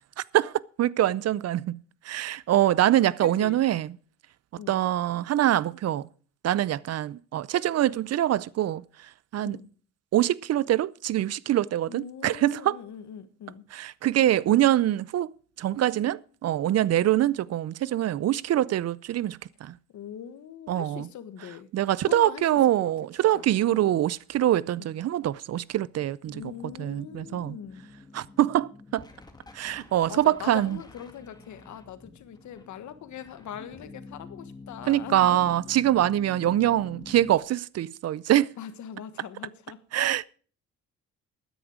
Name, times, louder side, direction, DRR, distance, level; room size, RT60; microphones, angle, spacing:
voice 1, 0.8-1.8 2.1-3.9 4.7-6.0 6.4-8.8 9.3-9.6 10.1-12.8 13.7-15.3 15.6-19.7 20.7-21.0 21.7-26.4 26.8-27.6 28.1-29.0 29.6-30.8 34.9-38.5 39.9-40.3, right 13 dB, 55° right, 0.5 m, -24 dB
voice 2, 3.2-3.6 4.6-4.8 9.4-9.7 11.9-13.7 19.9-21.7 22.0-22.9 23.3-23.8 24.8-24.9 26.3-27.8 30.1-35.5 38.6-39.8, left 9 dB, 70° left, 1.4 m, -42 dB
sound 1, 26.2-37.4, left 3 dB, 15° left, 2.3 m, -48 dB
13.0 x 10.0 x 4.9 m
cardioid pair, 90°, 30 cm